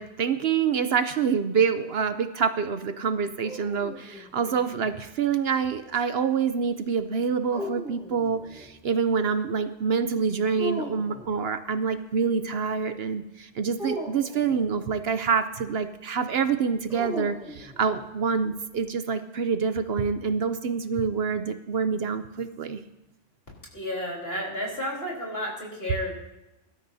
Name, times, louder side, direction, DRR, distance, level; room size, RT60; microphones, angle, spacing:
voice 1, 0.0-22.8, right 6 dB, 65° right, 10 dB, 0.9 m, -26 dB
sound 1, 3.2-5.0 7.5-8.7 10.6-11.4 13.8-14.9 16.9-18.1, equal, 5° right, 2.5 m, -37 dB
voice 2, 23.7-26.1, left 1 dB, 55° left, -2 dB, 3.9 m, -31 dB
22.5 x 12.5 x 2.7 m, 0.94 s
omnidirectional pair, 1.2 m